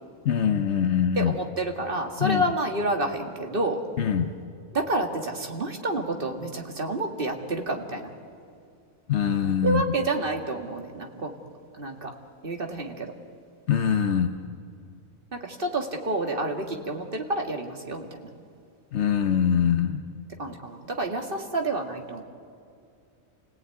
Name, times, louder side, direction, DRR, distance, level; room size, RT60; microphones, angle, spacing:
voice 1, 0.2-1.3 2.2-2.4 4.0-4.3 9.1-9.8 13.7-14.3 18.9-20.0, left 8 dB, 60° left, 7 dB, 1.1 m, -23 dB
voice 2, 1.2-3.8 4.7-8.1 9.6-11.3 11.8-12.1 12.4-13.1 15.3-18.2 20.4-22.2, right 2 dB, 40° right, 2 dB, 2.4 m, -29 dB
29.5 x 17.5 x 9.3 m, 2.4 s
omnidirectional pair, 1.4 m